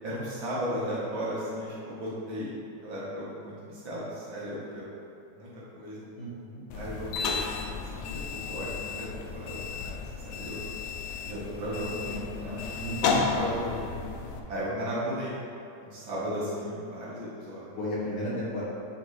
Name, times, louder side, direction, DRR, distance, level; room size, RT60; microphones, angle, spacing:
voice 1, 0.0-4.8 5.4-6.0 6.7-7.5 7.8-9.9 10.2-10.6 11.2-12.6 12.9-13.8 14.5-15.3 15.8-17.7, equal, 50° right, -8 dB, 1.7 m, -35 dB
voice 2, 6.1-6.6 12.7-13.2 17.8-18.6, equal, 55° left, -9 dB, 1.7 m, -33 dB
sound 1, 6.7-14.4, left 5 dB, 90° left, 2.1 m, -33 dB
9.6 x 3.7 x 3.2 m, 2.7 s
omnidirectional pair, 3.4 m